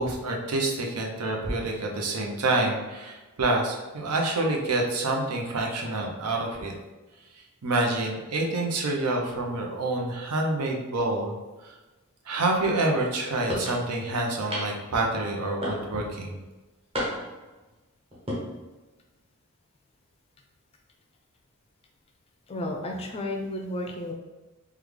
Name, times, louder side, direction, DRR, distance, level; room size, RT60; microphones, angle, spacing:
voice 1, 0.0-6.7 7.3-11.8 12.3-16.4, right 2 dB, 90° right, 1 dB, 0.7 m, -27 dB
sound 1, 13.5-13.8 14.5-14.9 15.6-16.1 16.9-17.4 18.1-18.4, equal, 25° right, 0.8 m, -31 dB
voice 2, 22.5-24.1, left 1 dB, 25° left, 3 dB, 0.4 m, -32 dB
3.6 x 2.3 x 3.2 m, 1.2 s
head